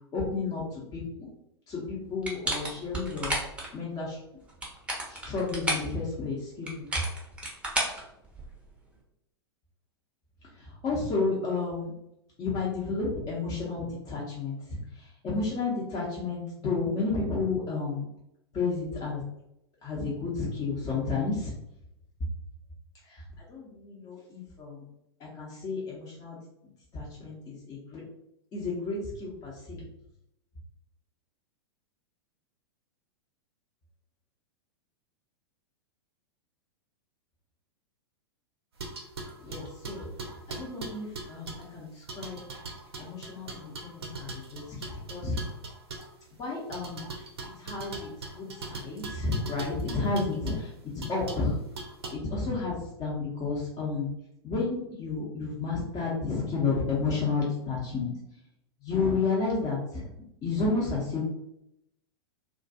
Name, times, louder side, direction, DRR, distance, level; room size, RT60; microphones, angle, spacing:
voice 1, 0.1-1.0 1.7-3.3 3.7-4.2 5.1-6.9 10.6-11.9 12.4-18.1 18.5-19.2 19.8-21.5 23.1-23.2 23.5-24.8 25.2-26.4 26.9-28.0 28.5-29.8 39.4-40.1 40.5-42.4 43.0-45.4 46.4-47.3 47.6-48.1 48.3-50.7 51.1-51.6 52.1-54.1 54.4-58.1 58.8-60.0 60.4-61.2, left 4 dB, 25° left, -6 dB, 0.7 m, -31 dB
sound 1, 2.2-3.7 4.4-5.9 6.7-8.7, right 1 dB, 10° right, 0.7 m, -32 dB
sound 2, 38.8-41.7 42.1-46.1 46.7-50.6 51.0-51.5 51.8-52.1, right 3 dB, 70° right, 0.6 m, -40 dB
2.3 x 2.3 x 2.6 m, 0.81 s
figure-of-eight pair, 95°, 14 cm